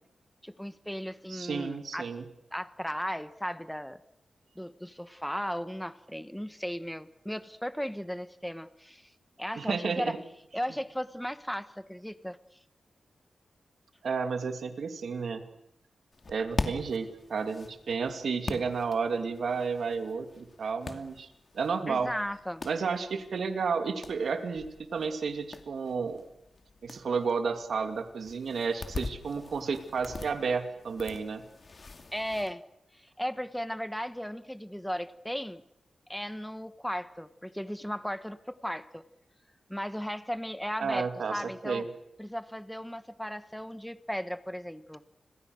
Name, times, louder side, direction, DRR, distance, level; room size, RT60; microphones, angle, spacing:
voice 1, 0.4-2.1 2.5-4.0 4.6-9.1 9.4-10.2 10.5-12.4 21.9-22.6 32.1-32.6 32.9-35.6 36.1-39.0 39.7-41.8 42.2-45.0, equal, 5° left, 13 dB, 1.3 m, -36 dB
voice 2, 1.3-2.2 9.6-10.2 14.0-15.5 16.3-21.3 21.5-22.1 22.6-24.7 24.9-26.2 26.8-31.4 40.8-41.8, right 5 dB, 75° right, 8 dB, 2.6 m, -32 dB
sound 1, 16.1-32.5, left 3 dB, 40° left, 2.5 m, -43 dB
29.5 x 22.0 x 6.6 m, 0.85 s
wide cardioid pair, 110°, 0 cm